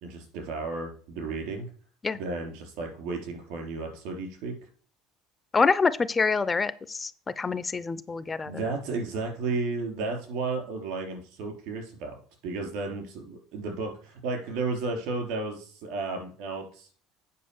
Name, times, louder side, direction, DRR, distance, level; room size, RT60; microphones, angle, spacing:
voice 1, 0.0-1.7 2.1-4.5 8.4-12.1 12.4-16.9, right 3 dB, 75° right, 3 dB, 3.6 m, -33 dB
voice 2, 5.5-7.1 7.4-8.5, left 4 dB, 15° left, 15 dB, 0.4 m, -26 dB
8.4 x 5.0 x 7.0 m, 0.43 s
cardioid pair, 150°, 0 cm